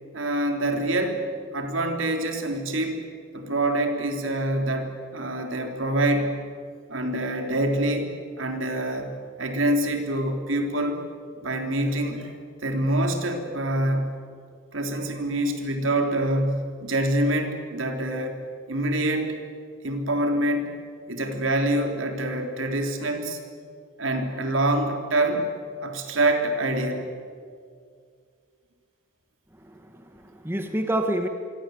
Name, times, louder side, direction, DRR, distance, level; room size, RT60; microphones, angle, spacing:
voice 1, 0.1-1.2 1.5-3.0 3.3-6.4 6.9-11.0 11.4-12.3 12.6-14.2 14.7-18.4 18.7-19.4 19.8-20.7 21.1-23.4 24.0-25.5 25.8-27.1, right 1 dB, 75° right, 5 dB, 3.4 m, -26 dB
voice 2, 29.6-31.3, right 1 dB, 10° right, 5 dB, 1.5 m, -28 dB
26.0 x 23.5 x 7.9 m, 2.2 s
head